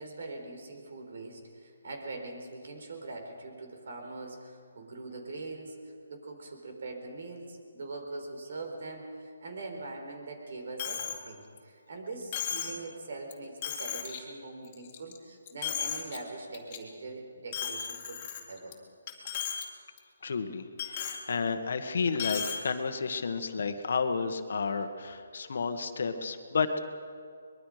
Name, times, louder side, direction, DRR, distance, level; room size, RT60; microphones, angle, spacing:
voice 1, 0.0-5.7 6.1-18.8, right 3 dB, 60° right, 3 dB, 4.4 m, -42 dB
Coin (dropping), 10.8-11.2 11.6-11.7 12.3-12.8 13.3-13.4 13.6-14.2 14.6-15.2 15.5-16.2 16.5-16.8 17.5-18.7 19.1-19.6 20.0-20.1 20.8-21.2 22.1-22.6, left 8 dB, 30° left, 2.4 m, -35 dB
voice 2, 20.2-26.8, left 5 dB, 60° left, 8 dB, 1.7 m, -31 dB
23.5 x 21.5 x 5.1 m, 2.3 s
hypercardioid pair, 165°, 0 cm